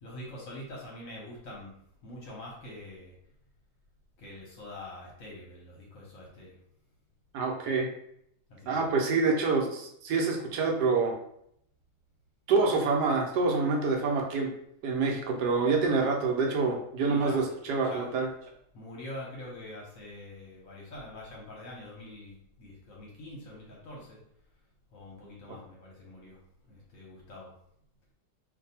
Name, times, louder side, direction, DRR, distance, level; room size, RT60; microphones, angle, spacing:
voice 1, 0.0-1.7 2.0-3.1 4.2-6.5 8.5-8.8 17.0-17.4 17.8-18.1 18.7-24.2 24.9-26.4 26.7-27.5, left 1 dB, 60° left, -3 dB, 1.0 m, -44 dB
voice 2, 7.3-7.9 8.7-11.1 12.5-14.5 14.8-18.3, right 4 dB, 70° right, 1 dB, 1.1 m, -26 dB
2.6 x 2.6 x 4.1 m, 0.73 s
omnidirectional pair, 1.9 m